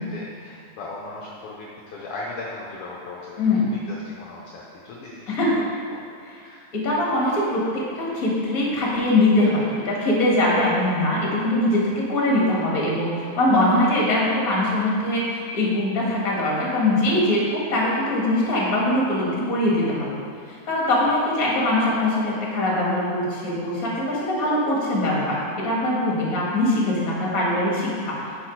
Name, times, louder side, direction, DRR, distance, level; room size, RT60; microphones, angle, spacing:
voice 1, 0.1-3.3 3.6-6.1 6.4-6.7 26.4-26.5, left 2 dB, 75° left, -4 dB, 1.3 m, -38 dB
voice 2, 6.7-20.2 20.7-28.1, left 1 dB, 35° left, -4 dB, 1.6 m, -22 dB
9.5 x 4.7 x 4.5 m, 2.4 s
omnidirectional pair, 3.4 m